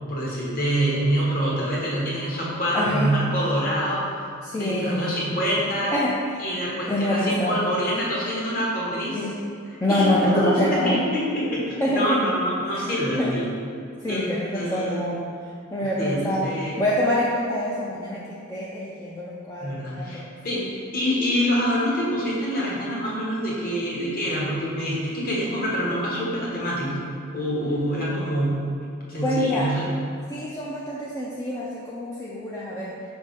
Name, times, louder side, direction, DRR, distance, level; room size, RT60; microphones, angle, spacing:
voice 1, 0.1-4.0 4.5-5.9 6.4-9.2 9.9-13.5 14.1-15.0 15.8-16.8 19.6-20.6 20.9-27.1 27.3-28.6 29.1-29.8, equal, 40° left, -5 dB, 1.4 m, -26 dB
voice 2, 2.7-3.1 4.4-5.2 5.9-6.1 6.9-7.6 9.1-9.3 9.8-11.0 11.8-12.2 12.7-13.4 14.0-15.3 15.7-16.5 16.8-20.7 29.2-29.7 30.3-32.9, left 1 dB, 15° left, -7 dB, 0.5 m, -26 dB
5.3 x 3.5 x 5.3 m, 2.3 s
head